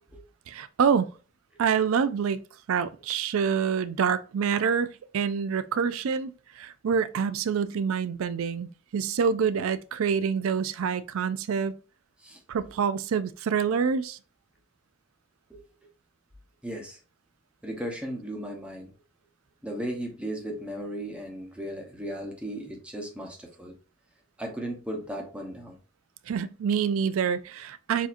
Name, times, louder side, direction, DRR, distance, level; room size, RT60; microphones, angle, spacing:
voice 1, 0.5-1.1 1.6-2.4 2.7-11.7 12.5-14.2 26.3-28.1, right 6 dB, 70° right, 0.4 m, -26 dB
voice 2, 16.6-17.0 17.6-18.9 19.6-23.8 24.4-25.8, right 1 dB, 5° right, 0.9 m, -36 dB
7.0 x 2.8 x 2.5 m
head